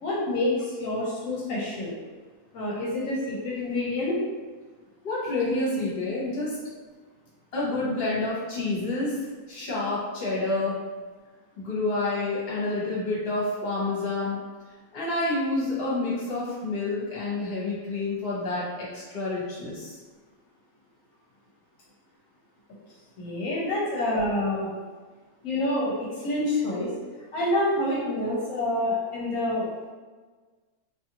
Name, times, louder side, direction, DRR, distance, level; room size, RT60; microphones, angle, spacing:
voice 1, 0.0-1.9 2.5-4.2 23.2-24.7 25.4-26.9 27.3-29.7, left 1 dB, 70° left, -5 dB, 1.0 m, -27 dB
voice 2, 5.0-6.6 7.5-9.2 9.5-10.8 11.6-14.4 14.9-19.9, left 2 dB, 50° left, -7 dB, 1.0 m, -28 dB
2.5 x 2.5 x 2.8 m, 1.4 s
omnidirectional pair, 1.5 m